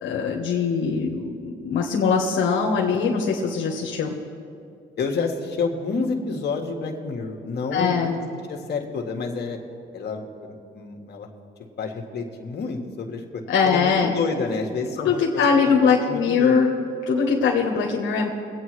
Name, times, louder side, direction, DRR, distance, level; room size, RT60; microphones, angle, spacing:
voice 1, 0.0-4.1 7.7-8.2 13.5-14.1 15.0-16.7 17.1-18.3, left 5 dB, 75° left, -1 dB, 1.2 m, -21 dB
voice 2, 5.0-8.1 8.5-9.6 9.9-11.3 11.8-15.7 16.0-16.6, left 4 dB, 55° left, 2 dB, 1.6 m, -29 dB
22.0 x 8.6 x 3.2 m, 2.4 s
cardioid pair, 90°, 20 cm